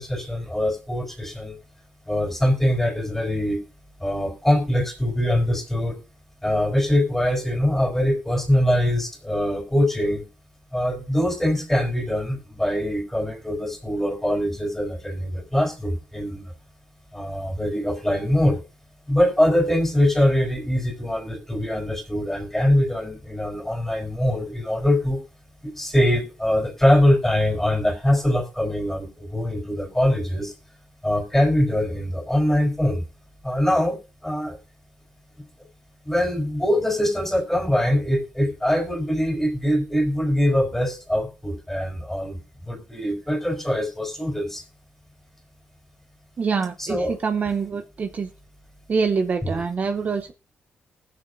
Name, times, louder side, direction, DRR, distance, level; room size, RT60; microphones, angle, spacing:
voice 1, 0.0-1.6 2.1-3.6 4.0-6.0 6.4-10.2 10.7-16.5 17.1-18.6 19.1-25.2 25.6-30.5 31.0-33.1 33.4-34.6 35.4-35.5 36.0-44.6 46.8-47.2 47.4-47.6 49.4-49.6, left 1 dB, 5° left, 2 dB, 3.6 m, -23 dB
voice 2, 46.4-48.3 48.9-50.3, right 5 dB, 45° right, 7 dB, 0.7 m, -25 dB
19.5 x 6.9 x 2.6 m, 0.32 s
cardioid pair, 105°, 4 cm